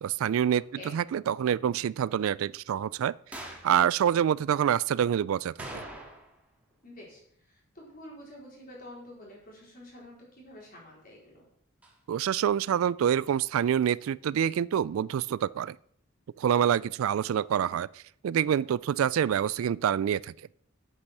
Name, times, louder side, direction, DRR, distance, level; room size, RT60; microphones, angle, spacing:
voice 1, 0.0-0.6 0.9-3.1 3.6-5.8 12.1-15.8 16.4-20.3, right 9 dB, 75° right, 0.3 m, -26 dB
sound 1, 3.3-3.8 5.6-6.4 6.7-6.8 11.8-11.9, right 1 dB, 5° right, 1.8 m, -42 dB
voice 2, 6.8-11.4 17.0-17.3, left 1 dB, 45° left, 4.4 m, -48 dB
8.6 x 8.2 x 6.1 m
head